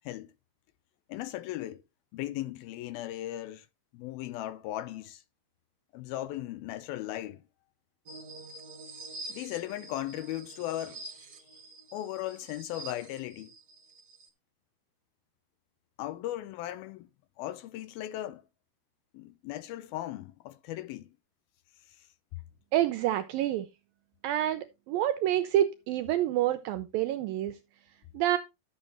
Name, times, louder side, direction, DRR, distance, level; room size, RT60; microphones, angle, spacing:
voice 1, 1.1-1.8 2.1-3.7 3.9-5.2 5.9-7.4 9.3-11.3 11.9-13.5 16.0-17.1 17.4-18.4 19.1-21.1 21.9-22.1, left 14 dB, 80° left, 2.5 m, -37 dB
sound 1, 8.1-14.3, right 3 dB, 55° right, 1.1 m, -46 dB
voice 2, 22.7-23.7 24.2-27.6 28.1-28.4, right 12 dB, 80° right, 2.3 m, -28 dB
12.5 x 7.6 x 3.0 m
omnidirectional pair, 4.4 m